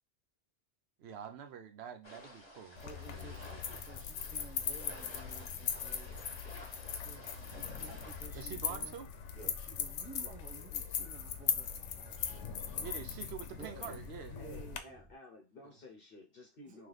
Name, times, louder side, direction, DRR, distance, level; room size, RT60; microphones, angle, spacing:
voice 1, 1.0-2.8 3.1-3.8 8.3-9.1 12.8-14.3, right 8 dB, 70° right, 0.9 m, -46 dB
sound 1, 2.0-8.3, left 1 dB, 25° left, 1.2 m, -53 dB
sound 2, 2.8-14.8, left 7 dB, 85° left, 0.9 m, -40 dB
voice 2, 2.8-6.2 6.8-8.9 9.3-12.9 13.5-13.9 14.2-15.0 16.6-16.9, right 5 dB, 10° right, 0.5 m, -54 dB
sound 3, 3.1-15.1, right 1 dB, 35° right, 1.0 m, -59 dB
voice 3, 13.5-14.0 14.4-16.9, left 3 dB, 55° left, 0.9 m, -54 dB
3.2 x 3.1 x 3.8 m
omnidirectional pair, 1.2 m